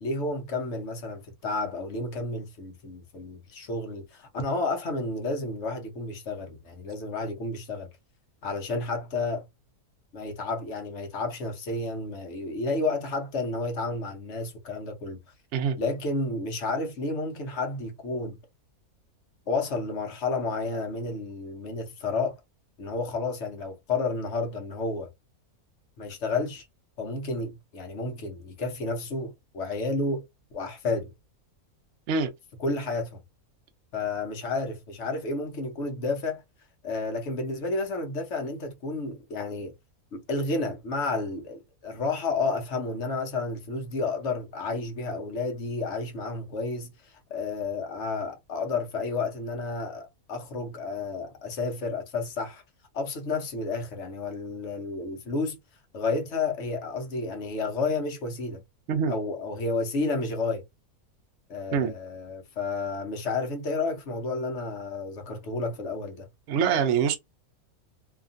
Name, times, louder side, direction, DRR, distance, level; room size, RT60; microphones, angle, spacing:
voice 1, 0.0-7.9 8.4-9.5 10.1-15.2 15.8-18.4 19.5-22.4 22.8-25.1 26.0-26.7 27.0-30.2 30.5-31.1 32.6-33.2 33.9-36.4 36.8-39.7 40.1-52.6 52.9-55.6 55.9-58.6 59.1-60.6 61.5-66.3, left 3 dB, 55° left, 1.0 m, -31 dB
voice 2, 66.5-67.2, right 6 dB, 65° right, 0.7 m, -24 dB
2.8 x 2.5 x 2.4 m
omnidirectional pair, 1.5 m